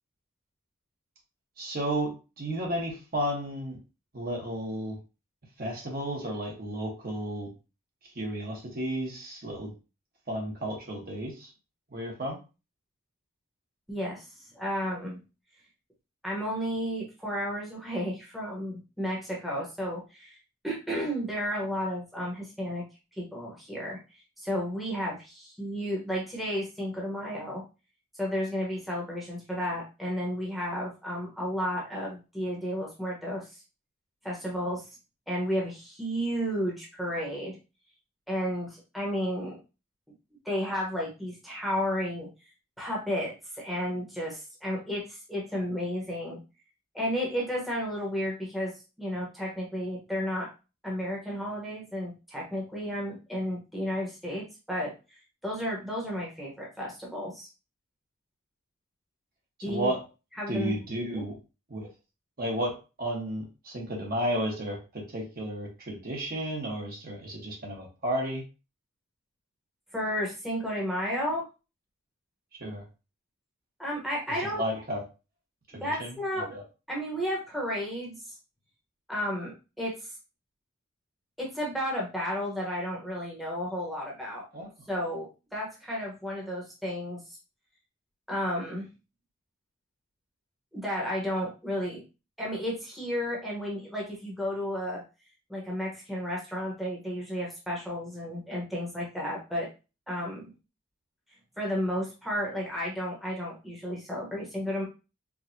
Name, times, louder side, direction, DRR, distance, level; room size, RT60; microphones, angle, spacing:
voice 1, 1.6-3.8 4.1-5.0 5.6-7.5 8.1-9.7 10.3-11.5 11.9-12.4 59.7-60.0 60.5-61.4 61.7-61.9 62.4-68.4 72.6-72.8 74.5-75.0 75.7-76.2 76.5-76.6 84.5-84.7, right 1 dB, 45° right, -1 dB, 1.1 m, -33 dB
voice 2, 13.9-14.3 14.5-15.2 16.2-20.4 20.6-22.8 23.1-24.0 24.4-27.6 28.2-33.6 34.2-34.9 35.3-37.6 38.3-39.6 40.4-42.3 42.8-46.4 46.9-50.5 50.8-54.9 55.4-57.5 59.6-59.9 60.4-60.8 61.1-61.2 69.9-71.5 73.8-74.6 75.8-76.5 76.9-78.3 79.1-80.1 81.4-84.4 84.9-87.4 88.3-88.9 90.7-92.0 92.4-95.0 95.5-99.7 100.1-100.5 101.6-104.9, equal, ahead, -4 dB, 1.0 m, -32 dB
4.8 x 2.3 x 2.7 m, 0.30 s
head